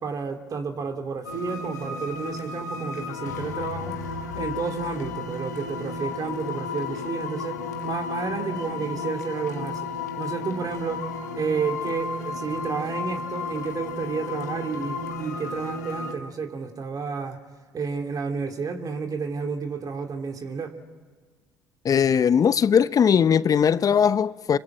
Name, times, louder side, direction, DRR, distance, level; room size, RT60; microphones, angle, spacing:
voice 1, 0.0-4.0 4.3-9.9 10.2-11.1 11.3-17.4 17.7-20.7, right 5 dB, 45° right, 2.9 m, -31 dB
sound 1, 1.2-16.1, left 3 dB, 90° left, 1.7 m, -33 dB
voice 2, 21.8-24.6, left 7 dB, 45° left, 0.9 m, -19 dB
27.0 x 24.5 x 8.7 m
hypercardioid pair, 55°, 9 cm